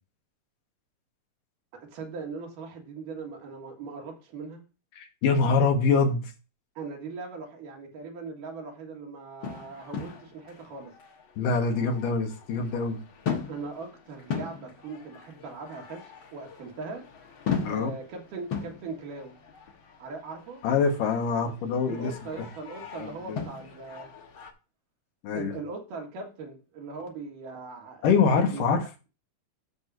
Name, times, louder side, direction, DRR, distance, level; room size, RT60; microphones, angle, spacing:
voice 1, 1.7-4.6 6.8-10.9 13.5-17.1 17.7-19.4 20.0-20.6 21.9-24.1 25.3-28.1 28.4-28.7, right 4 dB, 90° right, 3.3 m, -40 dB
voice 2, 5.0-6.3 11.4-13.0 17.6-17.9 20.6-22.1 23.0-23.4 25.2-25.6 28.0-28.8, left 5 dB, 90° left, 2.9 m, -24 dB
sound 1, 9.4-24.5, left 6 dB, 60° left, 1.4 m, -39 dB
14.0 x 6.0 x 2.6 m
omnidirectional pair, 3.7 m